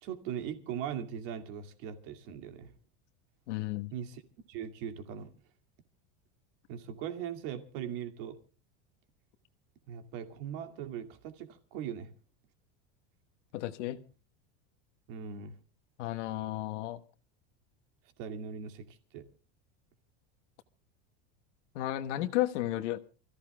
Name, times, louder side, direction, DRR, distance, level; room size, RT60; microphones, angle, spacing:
voice 1, 0.0-2.7 3.9-4.2 4.5-5.3 6.7-8.4 9.9-12.1 15.1-15.6 18.2-19.3, right 8 dB, 50° right, 2.3 m, -40 dB
voice 2, 3.5-3.9 13.5-14.0 16.0-17.0 21.7-23.0, left 15 dB, 80° left, 1.3 m, -33 dB
29.0 x 15.0 x 2.2 m
supercardioid pair, 175°, 35 cm